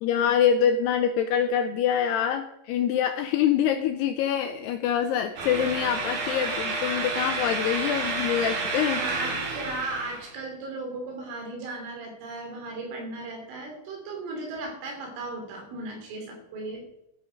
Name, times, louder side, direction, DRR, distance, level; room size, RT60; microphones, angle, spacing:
voice 1, 0.0-9.0, left 9 dB, 85° left, 7 dB, 2.4 m, -25 dB
sound 1, 5.4-10.3, right 3 dB, 55° right, 3.3 m, -30 dB
voice 2, 8.9-16.8, right 2 dB, 90° right, 2 dB, 5.7 m, -36 dB
13.5 x 8.9 x 5.0 m, 0.85 s
omnidirectional pair, 5.5 m